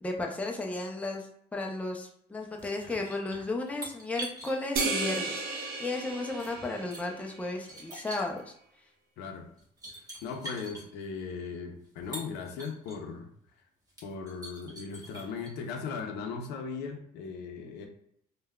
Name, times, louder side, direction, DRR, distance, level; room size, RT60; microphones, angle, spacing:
voice 1, 0.0-8.4, left 2 dB, 10° left, 1 dB, 0.4 m, -34 dB
sound 1, 2.4-5.2 5.8-7.0 7.6-8.4 9.2-9.3 9.6-10.8 11.8-13.0 13.4-13.5 13.9-15.5, right 1 dB, 20° right, 1.1 m, -44 dB
sound 2, 4.8-7.5, right 3 dB, 60° right, 0.6 m, -34 dB
voice 2, 9.2-9.5 9.9-13.3 14.0-17.9, left 5 dB, 85° left, 4 dB, 0.6 m, -38 dB
3.4 x 2.2 x 2.2 m, 0.69 s
cardioid pair, 110°, 17 cm